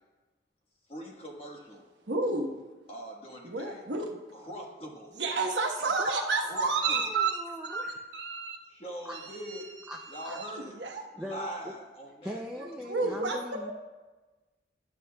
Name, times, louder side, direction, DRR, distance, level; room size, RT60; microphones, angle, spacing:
voice 1, 0.9-1.8 2.9-3.8 4.3-5.2 6.4-7.0 8.7-9.7 10.1-10.8 11.1-12.4 12.8-13.2, equal, 35° left, 0 dB, 1.3 m, -42 dB
voice 2, 2.1-2.5 3.4-4.1 5.1-8.6 9.2-9.6 10.2-11.0 12.9-13.4 13.7-13.8, right 3 dB, 80° right, 2 dB, 1.1 m, -31 dB
voice 3, 5.8-8.0 9.0-9.1 9.9-10.0 10.2-10.4 11.2-11.5 12.2-13.7, equal, 5° right, -1 dB, 0.4 m, -41 dB
12.0 x 10.0 x 2.3 m, 1.2 s
head